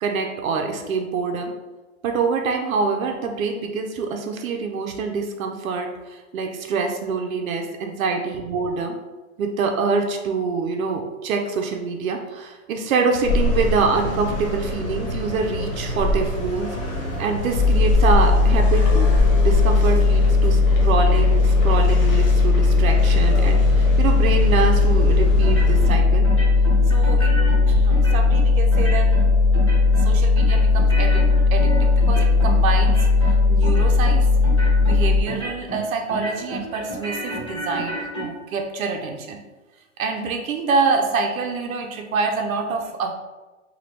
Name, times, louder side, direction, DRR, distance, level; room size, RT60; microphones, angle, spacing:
voice 1, 0.0-1.5 2.0-9.0 9.4-16.7 17.2-19.1 19.4-26.3 26.9-29.1 30.0-33.1 33.5-34.3 34.8-39.4 40.0-43.1, right 4 dB, 75° right, 3 dB, 0.6 m, -25 dB
sound 1, 13.2-25.9, left 1 dB, 70° left, 1.2 m, -26 dB
sound 2, 17.5-35.2, left 4 dB, 30° right, 0.8 m, -17 dB
sound 3, 25.4-26.0 26.2-27.6 27.9-28.4 28.7-29.3 29.5-30.1 30.4-32.6 32.8-33.3 33.6-34.1 34.4-34.9 35.3-35.8 36.1-38.2, right 1 dB, 25° left, 0.3 m, -31 dB
3.1 x 2.3 x 3.0 m, 1.2 s
hypercardioid pair, 170°, 42 cm